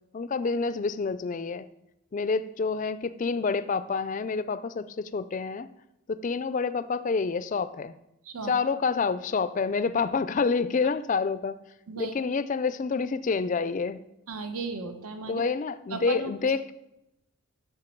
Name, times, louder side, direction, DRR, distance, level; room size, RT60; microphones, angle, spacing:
voice 1, 0.1-1.7 2.1-5.7 6.1-8.0 8.4-11.6 12.0-14.0 15.3-16.7, left 4 dB, 35° left, 14 dB, 0.3 m, -28 dB
voice 2, 14.3-15.4 15.9-16.3, right 4 dB, 80° right, 7 dB, 1.0 m, -35 dB
11.5 x 6.6 x 4.5 m, 0.91 s
head